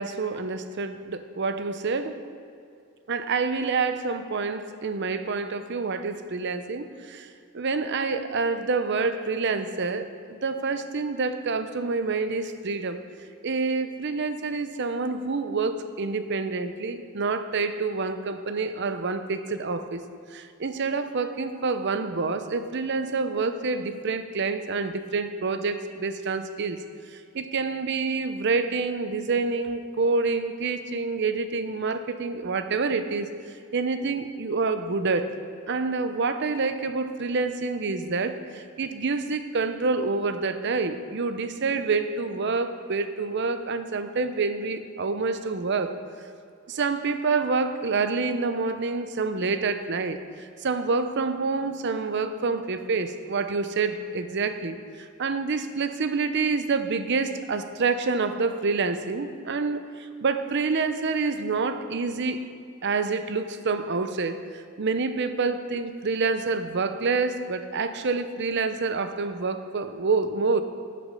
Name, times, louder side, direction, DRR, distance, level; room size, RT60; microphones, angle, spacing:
voice 1, 0.0-2.2 3.1-7.3 7.5-10.1 10.4-13.0 13.4-26.8 27.1-33.3 33.7-35.4 35.7-45.9 46.7-62.4 62.8-70.6, right 4 dB, 55° right, 10 dB, 0.6 m, -27 dB
11.0 x 6.8 x 5.5 m, 2.4 s
head